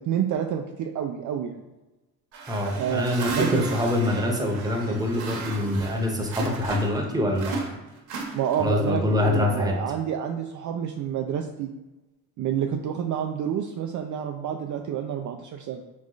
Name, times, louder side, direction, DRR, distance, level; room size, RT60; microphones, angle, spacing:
voice 1, 0.0-1.6 2.7-3.7 8.3-11.7 12.4-15.8, right 9 dB, 50° right, 3 dB, 0.4 m, -28 dB
sound 1, 2.3-7.1 7.4-8.8, right 4 dB, 80° right, 1.0 m, -35 dB
voice 2, 2.5-7.6 8.6-9.7, left 1 dB, 10° right, 0 dB, 0.9 m, -25 dB
3.5 x 3.2 x 3.8 m, 1.1 s
cardioid pair, 85°, 40 cm